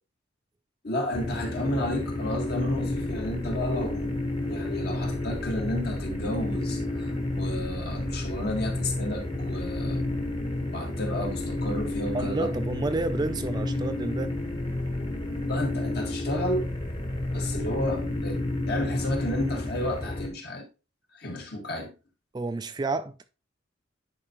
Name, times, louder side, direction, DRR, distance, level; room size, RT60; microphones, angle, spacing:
voice 1, 0.8-4.1 4.4-10.0 10.7-12.5 15.5-16.7 17.3-20.7 21.1-21.9, left 1 dB, 55° left, 1.7 m, -32 dB
sound 1, 1.1-20.3, left 1 dB, 25° left, 1.2 m, -31 dB
voice 2, 12.1-14.3 22.3-23.2, right 3 dB, 20° right, 0.3 m, -30 dB
9.8 x 4.6 x 2.9 m
head